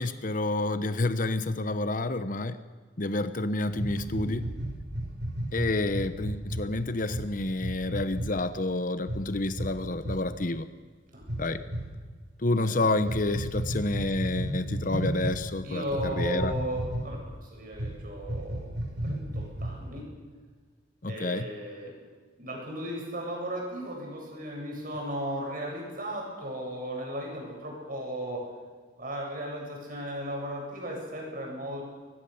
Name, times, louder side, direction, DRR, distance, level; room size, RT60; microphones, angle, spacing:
voice 1, 0.0-2.6 3.0-4.4 5.5-10.7 11.4-11.6 12.4-16.5 21.0-21.5, left 2 dB, 45° left, 12 dB, 0.9 m, -29 dB
sound 1, 3.7-6.6 7.1-7.2 7.6-8.3 9.0-9.2 9.5-9.7 10.0-10.2 11.2-11.8 13.0-15.3 15.9-17.3 17.7-17.9 18.2-19.9, right 1 dB, 80° right, 6.2 m, -32 dB
voice 2, 4.0-4.4 11.1-11.4 12.6-12.9 15.6-20.2 21.1-22.0 22.4-28.5 29.0-31.8, equal, 45° right, 0 dB, 8.0 m, -36 dB
23.5 x 20.5 x 7.1 m, 1.5 s
head